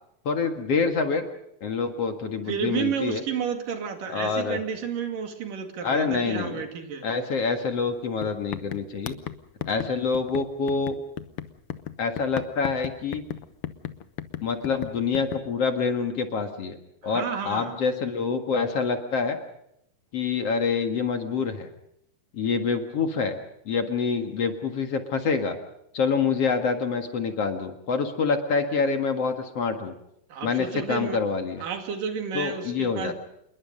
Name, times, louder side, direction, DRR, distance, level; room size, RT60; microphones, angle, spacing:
voice 1, 0.3-1.2 1.6-3.2 4.1-4.6 5.8-6.7 7.0-9.2 9.7-11.0 12.0-13.2 14.4-16.8 17.0-19.4 20.1-21.7 22.3-23.4 23.7-25.6 25.9-29.9 30.4-31.6 32.3-33.1, left 5 dB, 50° left, 6 dB, 2.6 m, -26 dB
voice 2, 2.5-7.1 17.0-17.8 30.3-31.2 31.6-33.1, right 7 dB, 75° right, 6 dB, 3.9 m, -31 dB
sound 1, 7.8-7.9 8.2-15.4, left 11 dB, 70° left, 1.3 m, -36 dB
28.0 x 21.5 x 5.3 m, 0.76 s
omnidirectional pair, 3.9 m